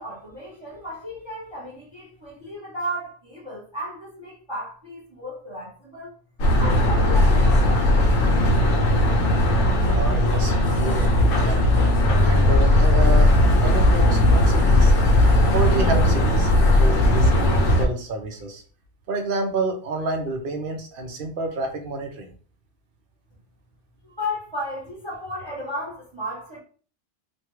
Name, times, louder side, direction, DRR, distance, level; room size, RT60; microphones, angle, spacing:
voice 1, 0.0-6.1 6.6-8.1 24.0-26.6, left 1 dB, 25° right, -5 dB, 0.9 m, -34 dB
sound 1, 6.4-17.9, left 1 dB, 85° left, 1.0 m, -18 dB
voice 2, 9.8-11.6 12.2-14.9 15.5-18.6 19.1-22.3, right 2 dB, 55° right, 3 dB, 0.8 m, -29 dB
3.2 x 2.2 x 2.9 m, 0.42 s
omnidirectional pair, 1.2 m